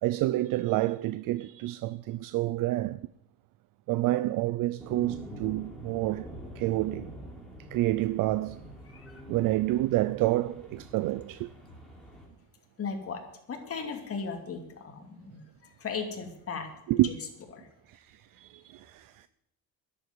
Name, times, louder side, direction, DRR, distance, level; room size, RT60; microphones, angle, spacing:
voice 1, 0.0-3.0 3.9-6.3 6.6-7.1 7.7-8.7 9.3-11.5 16.9-17.1 17.9-18.0 18.4-19.3, right 16 dB, 55° right, 0.5 m, -28 dB
sound 1, 4.8-12.3, equal, ahead, 3.5 m, -46 dB
voice 2, 12.8-13.2 13.5-15.4 15.8-17.1 17.5-17.7, left 5 dB, 35° left, 2.8 m, -37 dB
11.0 x 8.4 x 9.4 m
cardioid pair, 120°, 40 cm